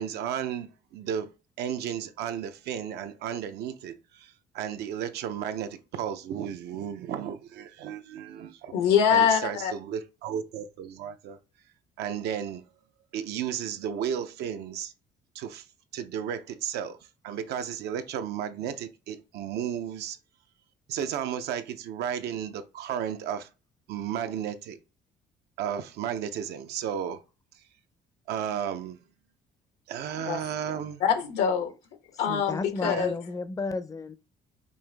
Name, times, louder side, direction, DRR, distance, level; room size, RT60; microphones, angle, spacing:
voice 1, 0.0-1.3 1.6-8.7 9.1-11.4 12.0-12.6 13.1-14.9 15.3-15.7 15.9-20.2 20.9-23.5 23.9-24.8 25.6-27.2 27.5-27.6 28.3-29.0 29.9-31.0 32.8-33.1, right 9 dB, 75° right, 0.6 m, -33 dB
voice 2, 8.7-9.7 30.3-30.4 31.0-31.7 32.2-33.2, left 8 dB, 90° left, 1.2 m, -24 dB
voice 3, 32.3-34.1, left 3 dB, 20° left, 0.5 m, -33 dB
5.5 x 2.6 x 3.4 m
cardioid pair, 110°, 17 cm